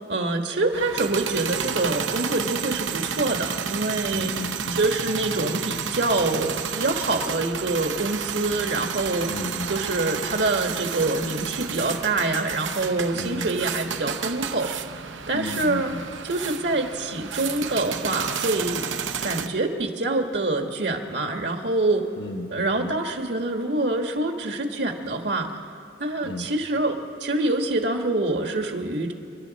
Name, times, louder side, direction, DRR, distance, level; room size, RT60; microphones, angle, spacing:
voice 1, 0.1-4.3 4.7-9.3 9.6-14.7 15.3-15.9 16.2-18.9 19.2-22.1 22.5-25.5 26.0-29.1, right 2 dB, 65° right, 4 dB, 1.5 m, -25 dB
sound 1, 0.7-19.5, right 7 dB, 85° right, 0.8 m, -31 dB
voice 2, 4.1-4.8 9.3-9.7 13.1-13.5 15.3-16.0 22.2-22.9 26.2-26.5, left 2 dB, 75° left, 5 dB, 0.9 m, -34 dB
29.0 x 11.0 x 4.1 m, 2.6 s
head